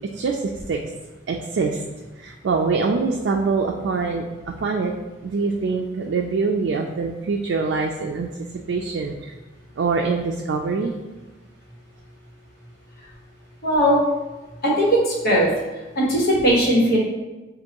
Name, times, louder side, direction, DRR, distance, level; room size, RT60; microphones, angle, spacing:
voice 1, 1.3-1.8 2.2-4.2 4.6-4.9 5.2-8.3 8.7-9.3 9.8-10.9, right 4 dB, 85° right, 1 dB, 0.4 m, -24 dB
voice 2, 13.6-14.0 14.6-15.5 15.9-17.0, equal, 55° left, -6 dB, 1.4 m, -18 dB
6.2 x 2.6 x 2.9 m, 1.2 s
head